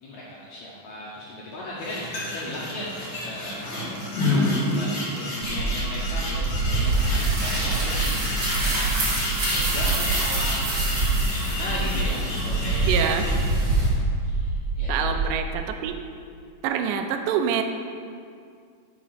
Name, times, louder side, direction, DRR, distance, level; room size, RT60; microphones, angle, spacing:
voice 1, 0.0-3.9 4.2-10.8 11.4-13.1 14.2-14.9, left 1 dB, 75° left, -6 dB, 1.6 m, -37 dB
sound 1, 1.8-13.4, left 1 dB, 50° left, 2.1 m, -30 dB
sound 2, 5.4-15.5, right 3 dB, 65° right, 1.5 m, -29 dB
sound 3, 6.5-13.9, right 2 dB, 45° right, 1.9 m, -27 dB
voice 2, 12.9-13.3 14.9-16.0 16.6-17.6, right 8 dB, 90° right, 6 dB, 1.9 m, -26 dB
5.9 x 5.0 x 5.6 m, 2.2 s
omnidirectional pair, 4.3 m